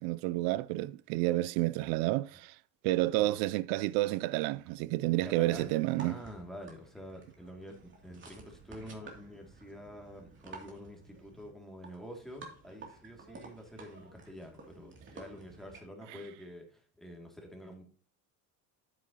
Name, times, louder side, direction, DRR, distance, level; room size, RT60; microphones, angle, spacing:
voice 1, 0.0-2.5 2.8-6.2, right 18 dB, 90° right, 0.5 m, -30 dB
voice 2, 5.1-5.7 6.0-7.8 8.0-17.9, equal, ahead, 2.4 m, -47 dB
sound 1, 5.5-15.8, right 3 dB, 30° right, 2.8 m, -52 dB
9.4 x 8.6 x 2.9 m
cardioid pair, 135°, 41 cm